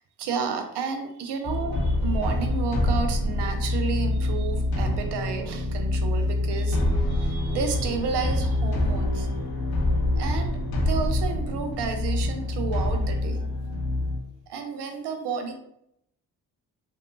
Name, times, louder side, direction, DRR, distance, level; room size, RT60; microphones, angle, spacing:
voice 1, 0.2-9.3 10.2-10.5 10.9-13.4 14.5-15.5, right 5 dB, 75° right, 5 dB, 0.6 m, -31 dB
sound 1, 1.4-14.2, left 1 dB, 60° left, 0.8 m, -26 dB
2.7 x 2.3 x 2.4 m, 0.76 s
supercardioid pair, 50°, 41 cm